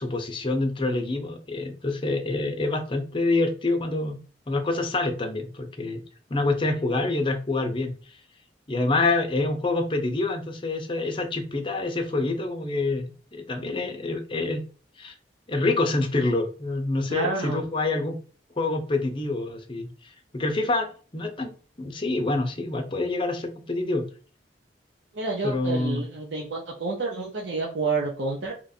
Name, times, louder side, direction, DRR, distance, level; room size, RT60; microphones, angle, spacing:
voice 1, 0.0-4.2 4.5-6.0 6.3-7.9 8.7-14.6 15.0-15.1 15.5-18.2 18.6-19.9 20.3-21.5 21.8-24.0 25.4-26.0, left 2 dB, 30° left, 4 dB, 0.6 m, -26 dB
voice 2, 17.1-17.6 25.1-28.5, right 3 dB, 80° right, -2 dB, 0.7 m, -29 dB
3.0 x 2.5 x 4.1 m, 0.39 s
head